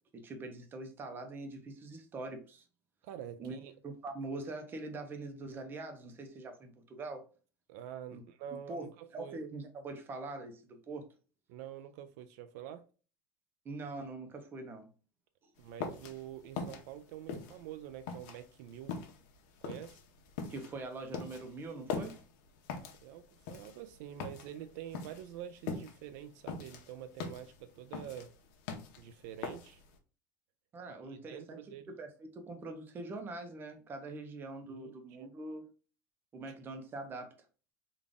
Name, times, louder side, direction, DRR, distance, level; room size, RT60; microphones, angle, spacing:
voice 1, 0.1-2.7 3.4-3.6 3.8-7.3 8.1-8.2 8.7-11.1 13.6-14.9 15.4-15.5 20.5-22.2 30.7-31.6 31.9-35.7 36.3-37.4, right 2 dB, 20° right, 0.6 m, -43 dB
voice 2, 3.0-3.7 7.7-9.4 11.5-12.8 15.6-19.0 19.6-20.0 23.0-28.3 29.0-29.8 31.1-31.9 34.7-35.3, right 10 dB, 65° right, 0.4 m, -47 dB
sound 1, 15.6-30.0, left 5 dB, 75° left, 0.9 m, -42 dB
3.8 x 2.4 x 3.5 m
cardioid pair, 160°, 10 cm